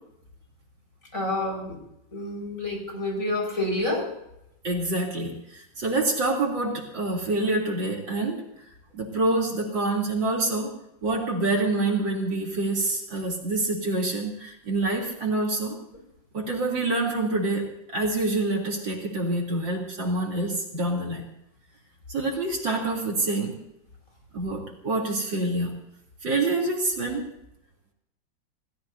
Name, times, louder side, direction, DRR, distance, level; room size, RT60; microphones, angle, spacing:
voice 1, 1.1-1.8 2.1-4.1, left 2 dB, 40° left, 1 dB, 5.6 m, -28 dB
voice 2, 4.6-8.4 8.9-10.7 11.0-15.8 16.3-21.3 22.1-23.5 24.3-25.7 26.2-27.2, right 2 dB, 70° right, -1 dB, 4.0 m, -26 dB
28.5 x 18.0 x 2.8 m, 0.81 s
omnidirectional pair, 2.1 m